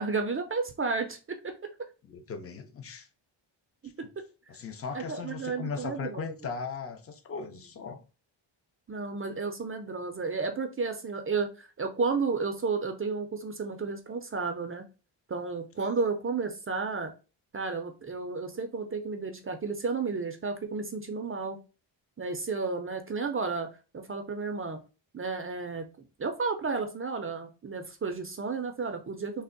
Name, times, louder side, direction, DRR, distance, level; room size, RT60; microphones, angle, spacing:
voice 1, 0.0-1.5 4.0-4.2 4.9-6.3 8.9-14.8 15.3-17.1 17.5-21.6 22.2-23.7 23.9-24.8 25.1-29.4, right 4 dB, 30° right, 0.4 m, -32 dB
voice 2, 2.1-3.1 4.0-4.1 4.5-8.0 15.8-15.9, left 5 dB, 30° left, 0.5 m, -38 dB
3.4 x 2.1 x 3.8 m
wide cardioid pair, 135°, 48 cm